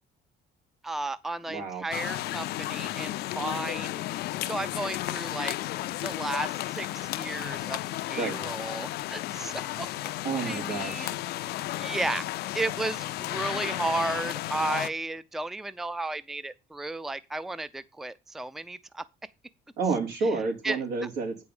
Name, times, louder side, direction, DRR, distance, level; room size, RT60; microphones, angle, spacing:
voice 1, 0.8-4.0 4.4-5.6 6.0-7.8 8.1-10.1 10.4-11.1 11.8-19.0 20.6-20.8, right 2 dB, ahead, 0.4 m, -33 dB
voice 2, 1.5-1.8 8.2-8.4 10.2-11.2 19.8-21.4, right 4 dB, 80° right, 3.3 m, -30 dB
sound 1, 1.9-14.9, left 16 dB, 70° left, 0.5 m, -33 dB
8.7 x 4.7 x 7.0 m
cardioid pair, 110°, 17 cm